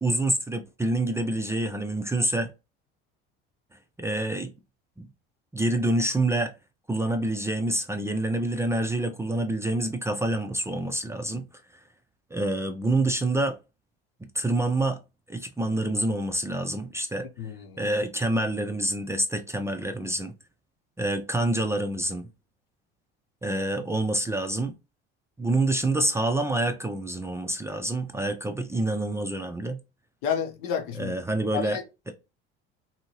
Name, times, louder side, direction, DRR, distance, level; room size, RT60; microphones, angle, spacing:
voice 1, 0.0-2.5 4.0-4.5 5.0-5.1 5.5-6.5 6.9-11.4 11.7-11.8 12.3-13.6 14.3-15.0 15.3-17.3 17.8-20.3 21.0-22.3 23.4-24.7 25.4-29.8 30.9-31.8 32.1-32.2, right 2 dB, 10° right, 0.4 m, -27 dB
voice 2, 17.4-17.8 30.2-31.1 31.5-31.8, left 8 dB, 70° left, 0.9 m, -30 dB
2.7 x 2.6 x 2.9 m
hypercardioid pair, 80°, 30 cm